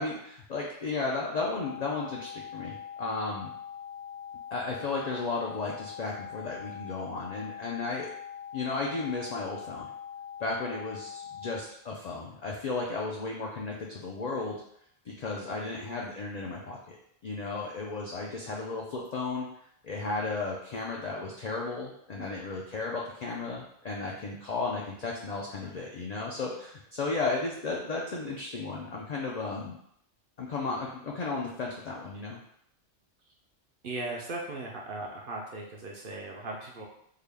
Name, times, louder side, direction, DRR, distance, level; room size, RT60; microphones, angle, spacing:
voice 1, 0.0-3.5 4.5-8.1 8.5-9.9 10.4-14.6 15.1-17.0 17.2-19.5 19.8-29.8 30.4-32.4, left 3 dB, 65° left, -2 dB, 0.4 m, -34 dB
sound 1, 1.6-11.6, left 8 dB, 85° right, 1.1 m, -43 dB
voice 2, 33.8-36.9, right 2 dB, 60° right, -1 dB, 0.6 m, -38 dB
3.7 x 2.2 x 3.3 m, 0.72 s
omnidirectional pair, 1.2 m